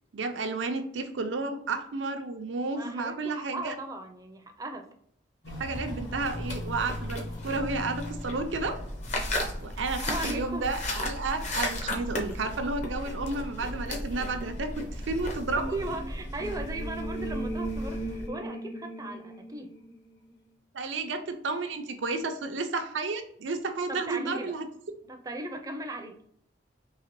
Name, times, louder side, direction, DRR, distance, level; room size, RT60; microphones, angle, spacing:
voice 1, 0.1-3.7 5.6-8.7 9.6-15.6 20.7-24.7, right 3 dB, 80° right, 6 dB, 0.5 m, -32 dB
voice 2, 2.7-4.9 10.0-10.7 15.7-19.7 23.9-24.5 25.0-26.2, right 2 dB, 20° right, 5 dB, 0.4 m, -37 dB
Walk footsteps, 5.4-17.8, left 1 dB, 80° left, 1.2 m, -43 dB
sound 1, 6.2-18.3, left 1 dB, 40° left, 0.7 m, -35 dB
sound 2, 15.5-20.3, right 1 dB, 60° left, 1.0 m, -38 dB
3.9 x 2.8 x 3.0 m, 0.67 s
head